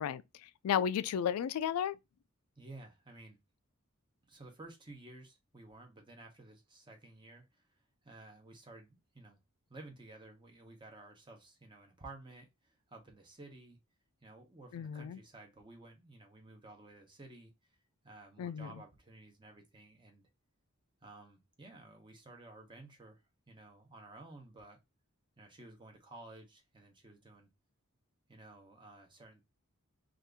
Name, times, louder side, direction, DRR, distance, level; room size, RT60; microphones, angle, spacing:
voice 1, 0.0-2.0 14.7-15.2 18.4-18.7, left 8 dB, 80° left, 0.3 m, -34 dB
voice 2, 2.6-3.4 4.3-7.7 8.0-9.4 9.7-13.8 14.2-17.8 18.0-20.2 21.0-24.8 25.4-27.5 28.3-29.4, right 2 dB, 20° right, 0.9 m, -54 dB
2.7 x 2.5 x 3.5 m
head